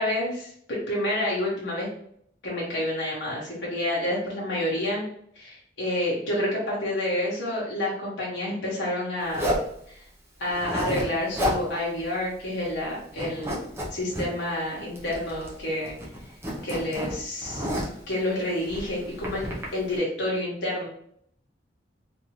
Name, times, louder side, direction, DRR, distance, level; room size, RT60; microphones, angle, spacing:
voice 1, 0.0-1.9 2.4-5.1 5.4-9.5 9.9-10.0 10.4-13.5 13.9-15.9 16.6-17.7 18.1-20.9, left 1 dB, 75° left, -5 dB, 1.0 m, -29 dB
Zipper (clothing), 9.3-9.7 10.5-11.1 11.3-11.6 12.0-12.1 12.4-12.8 13.1-14.3 15.0-15.6 15.8-18.0 18.6-19.6, equal, 15° right, 0.7 m, -30 dB
3.8 x 2.6 x 3.0 m, 0.68 s
head